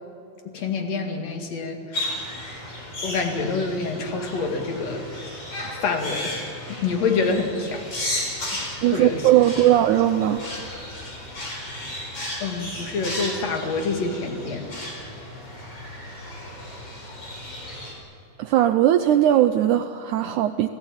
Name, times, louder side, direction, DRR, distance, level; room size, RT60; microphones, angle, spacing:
voice 1, 0.4-2.3 3.0-5.1 5.8-6.4 6.7-7.8 8.9-9.3 12.4-14.7, left 4 dB, 50° left, 4 dB, 3.1 m, -27 dB
sound 1, 1.9-17.9, left 1 dB, 30° left, 5.4 m, -34 dB
voice 2, 8.8-10.4 18.4-20.7, right 12 dB, 85° right, 9 dB, 1.7 m, -19 dB
29.0 x 15.5 x 8.9 m, 2.7 s
omnidirectional pair, 4.3 m